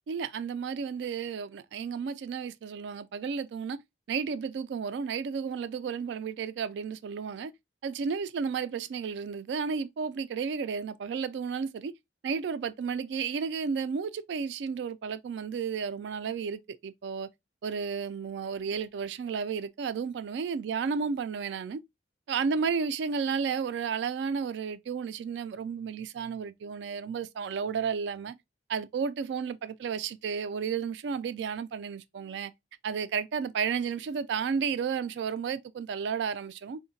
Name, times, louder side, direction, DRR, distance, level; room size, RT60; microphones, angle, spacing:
voice 1, 0.1-3.8 4.1-7.5 7.8-11.9 12.2-17.3 17.6-21.8 22.3-28.3 28.7-32.5 32.8-36.8, right 6 dB, 75° right, 0.3 m, -32 dB
3.7 x 2.1 x 2.5 m
head